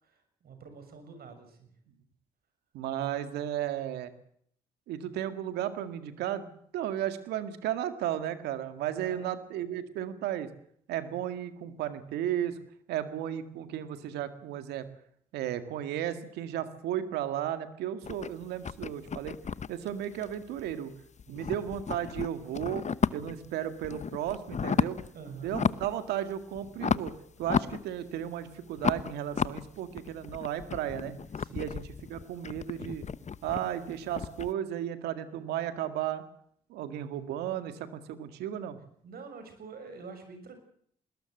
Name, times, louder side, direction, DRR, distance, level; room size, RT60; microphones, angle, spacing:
voice 1, 0.0-1.7 9.0-9.3 21.3-21.6 25.1-25.6 31.4-31.7 39.0-40.6, right 5 dB, 70° right, 7 dB, 6.5 m, -47 dB
voice 2, 2.7-4.1 4.9-10.5 10.9-12.6 12.9-14.9 15.3-19.4 19.7-20.9 21.3-22.9 23.1-25.0 25.4-31.1 31.5-33.0 33.4-36.2 36.7-38.8, right 11 dB, 85° right, 10 dB, 2.0 m, -34 dB
sound 1, 18.0-20.9 21.2-23.5 23.8-25.1 25.4-26.0 26.3-28.3 28.8-34.5, left 6 dB, 45° left, 1.0 m, -33 dB
20.5 x 18.5 x 7.9 m, 0.66 s
supercardioid pair, 50°, 17 cm